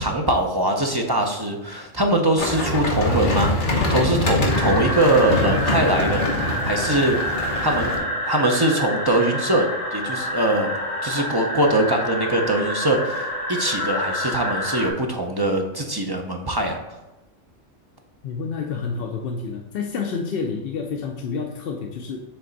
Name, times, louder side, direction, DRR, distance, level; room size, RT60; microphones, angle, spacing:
voice 1, 0.0-7.2 7.6-10.7 11.0-16.8, right 1 dB, 30° right, 2 dB, 0.5 m, -22 dB
sound 1, 2.4-8.0, left 1 dB, 40° left, 1.3 m, -24 dB
sound 2, 4.5-14.9, left 1 dB, 90° left, 1.8 m, -28 dB
voice 2, 18.2-22.2, left 5 dB, 60° left, 2 dB, 0.7 m, -29 dB
7.7 x 3.4 x 4.0 m, 1.1 s
omnidirectional pair, 1.3 m